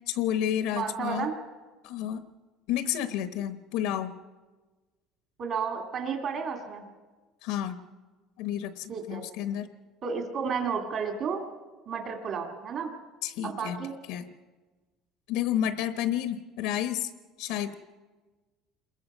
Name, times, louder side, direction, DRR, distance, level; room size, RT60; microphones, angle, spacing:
voice 1, 0.1-1.3 1.8-2.2 2.7-4.1 7.4-7.8 8.4-9.7 13.2-13.8 14.1-14.2 15.3-17.1 17.4-17.8, left 10 dB, 80° left, 10 dB, 1.0 m, -30 dB
voice 2, 0.7-1.3 5.4-6.8 8.9-9.2 10.0-11.4 11.9-12.9 13.4-14.0, right 6 dB, 45° right, 3 dB, 2.0 m, -32 dB
27.5 x 21.5 x 5.4 m, 1.3 s
cardioid pair, 155°, 0 cm